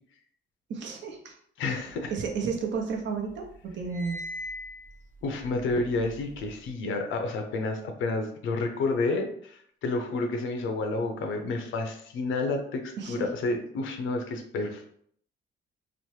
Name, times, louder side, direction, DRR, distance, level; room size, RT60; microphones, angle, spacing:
voice 1, 0.7-1.3 2.1-4.2 13.0-13.2, right 5 dB, 65° right, 2 dB, 0.7 m, -32 dB
voice 2, 1.6-2.1 5.2-14.9, left 3 dB, 75° left, 5 dB, 0.6 m, -30 dB
sound 1, 1.9-3.0 3.3-6.7, equal, 40° right, 0.9 m, -42 dB
3.0 x 2.1 x 3.1 m, 0.63 s
cardioid pair, 90°, 20 cm